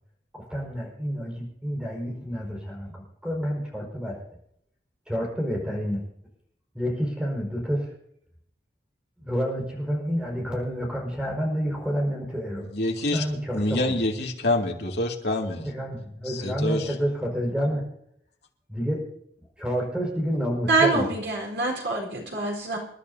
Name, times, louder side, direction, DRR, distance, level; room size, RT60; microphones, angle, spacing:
voice 1, 0.3-4.2 5.1-6.0 6.7-7.9 9.2-12.6 13.1-13.9 15.6-17.8 18.7-19.0 19.6-21.1, equal, 5° right, -1 dB, 5.1 m, -29 dB
voice 2, 12.6-13.2 13.5-15.7 16.2-16.9, left 2 dB, 70° left, 0 dB, 2.4 m, -27 dB
voice 3, 20.7-22.8, right 3 dB, 75° right, 0 dB, 4.2 m, -25 dB
28.0 x 11.5 x 2.8 m, 0.71 s
head